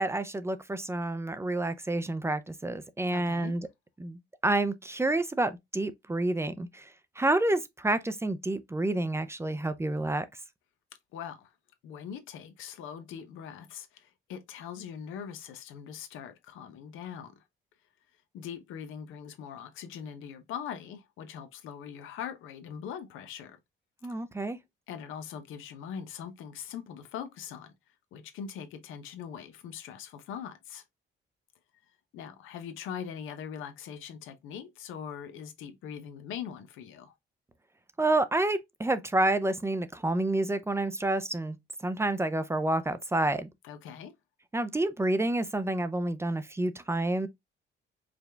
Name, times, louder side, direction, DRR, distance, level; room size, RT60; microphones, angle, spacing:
voice 1, 0.0-3.7 4.0-6.9 7.2-10.3 24.0-24.6 38.0-41.6 41.8-43.5 44.5-47.3, right 2 dB, 15° right, 0.5 m, -29 dB
voice 2, 3.1-3.6 11.1-11.5 11.8-17.3 18.3-23.6 24.9-27.7 28.1-30.8 32.1-37.1 43.6-44.1, left 8 dB, 90° left, 0.8 m, -41 dB
5.0 x 2.3 x 3.2 m
cardioid pair, 90°, 20 cm